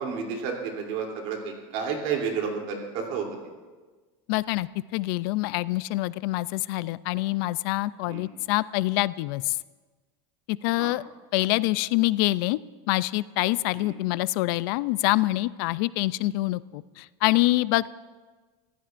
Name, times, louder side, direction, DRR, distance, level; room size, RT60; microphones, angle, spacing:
voice 1, 0.0-3.3 8.1-8.2 10.8-11.0 13.7-14.0, right 6 dB, 55° right, 1 dB, 3.0 m, -31 dB
voice 2, 4.3-9.6 10.5-11.0 11.3-12.6 12.9-17.9, left 19 dB, 65° left, 18 dB, 0.4 m, -25 dB
25.5 x 15.5 x 2.5 m, 1.3 s
cardioid pair, 165°, 13 cm